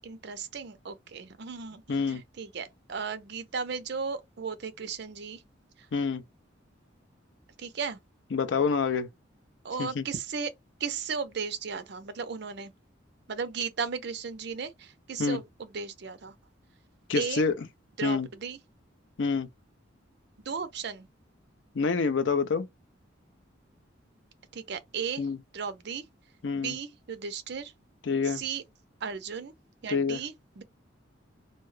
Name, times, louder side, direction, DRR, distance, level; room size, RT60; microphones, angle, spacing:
voice 1, 0.0-5.4 7.6-8.0 9.6-10.5 10.8-12.7 13.3-16.3 17.1-17.4 18.0-18.6 20.4-21.1 24.5-25.2 25.5-26.0 26.5-27.7 28.2-28.6 29.0-29.5 29.8-30.6, right 6 dB, 60° right, 0.5 m, -35 dB
voice 2, 1.9-2.2 5.9-6.2 8.3-9.1 9.8-10.0 15.2-15.4 17.1-17.5 18.0-18.3 19.2-19.5 21.7-22.7 25.2-25.4 26.4-26.8 28.0-28.4 29.9-30.2, left 5 dB, 65° left, 0.5 m, -27 dB
2.7 x 2.2 x 3.2 m
head